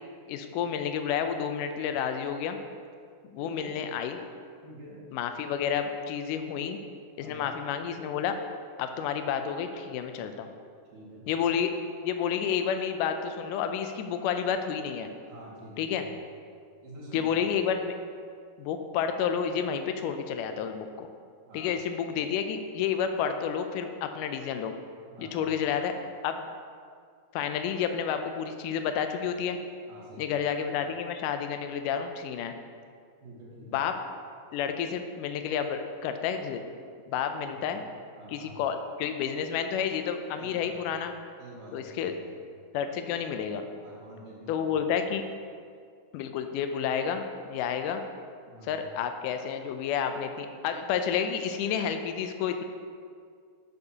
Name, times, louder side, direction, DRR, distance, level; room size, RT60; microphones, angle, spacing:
voice 1, 0.3-2.6 3.3-4.2 5.1-6.8 7.2-8.4 8.8-10.5 11.3-11.7 12.0-15.1 15.8-16.0 17.1-18.0 18.6-21.1 21.5-24.7 25.2-25.9 26.2-26.5 27.3-29.6 30.2-32.5 33.7-34.0 34.5-36.6 37.1-37.8 38.3-41.1 41.7-42.1 42.7-43.6 44.5-45.3 46.1-48.0 48.7-52.6, left 7 dB, 80° left, 7 dB, 2.1 m, -30 dB
voice 2, 3.4-3.8 4.6-5.0 7.2-7.5 10.9-11.3 15.2-16.2 16.8-17.3 21.5-21.8 25.1-25.6 29.9-30.4 33.2-33.8 37.5-38.6 40.4-40.9 41.4-42.4 43.8-44.9 48.5-48.8, right 1 dB, 85° right, -7 dB, 3.8 m, -47 dB
11.5 x 6.7 x 2.9 m, 2.2 s
omnidirectional pair, 3.8 m